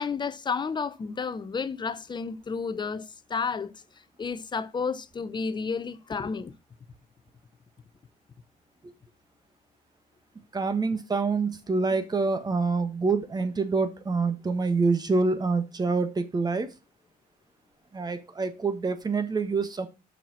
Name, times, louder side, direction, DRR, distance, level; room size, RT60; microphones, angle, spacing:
voice 1, 0.0-3.7 4.2-6.5, left 5 dB, 25° left, 0.8 m, -31 dB
voice 2, 10.5-16.7 17.9-19.9, right 4 dB, 25° right, 1.4 m, -26 dB
6.8 x 5.9 x 6.1 m
cardioid pair, 110°, 17 cm